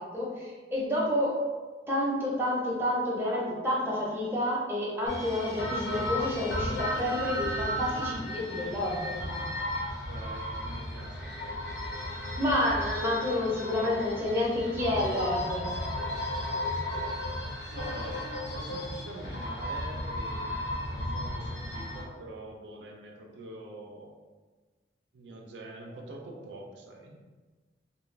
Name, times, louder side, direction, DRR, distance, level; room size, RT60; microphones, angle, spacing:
voice 1, 0.0-1.4 1.9-9.2 12.4-15.7, left 1 dB, 15° right, -6 dB, 0.6 m, -29 dB
sound 1, 5.1-22.0, left 1 dB, 65° left, 0.7 m, -34 dB
voice 2, 10.1-11.3 17.7-18.2 18.5-24.2 25.1-27.2, right 2 dB, 80° right, 1 dB, 0.4 m, -45 dB
2.4 x 2.3 x 3.1 m, 1.3 s
head